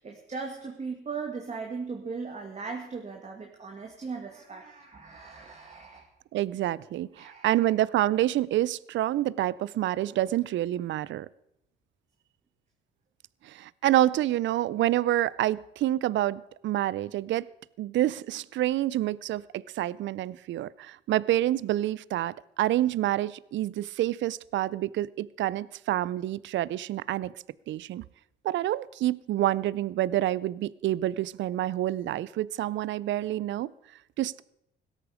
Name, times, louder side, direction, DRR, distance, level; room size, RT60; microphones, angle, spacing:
voice 1, 0.0-6.1 7.2-7.7, right 4 dB, 35° right, 2 dB, 2.0 m, -38 dB
voice 2, 6.3-11.3 13.4-17.5 17.8-27.3 27.7-28.0 28.4-33.7 34.2-34.4, right 14 dB, 70° right, 22 dB, 0.5 m, -28 dB
17.0 x 13.0 x 4.9 m, 0.78 s
cardioid pair, 90°, 20 cm